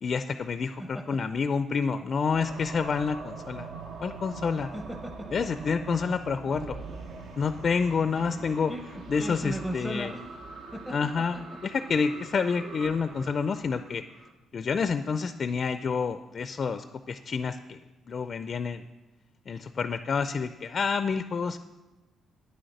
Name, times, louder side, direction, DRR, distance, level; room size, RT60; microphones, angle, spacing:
voice 1, 0.0-3.7 4.0-4.7 5.3-6.8 7.4-8.7 9.1-10.1 10.9-11.4 11.6-14.0 14.5-17.8 18.1-18.8 19.5-21.6, left 5 dB, 45° left, 11 dB, 0.4 m, -28 dB
voice 2, 0.8-1.2 4.7-5.3 6.0-6.1 8.7-10.3 10.7-11.6, equal, 5° right, 6 dB, 0.6 m, -37 dB
sound 1, 2.3-14.3, right 4 dB, 75° right, 1.2 m, -42 dB
9.3 x 6.4 x 7.8 m, 1.1 s
cardioid pair, 90°, 0 cm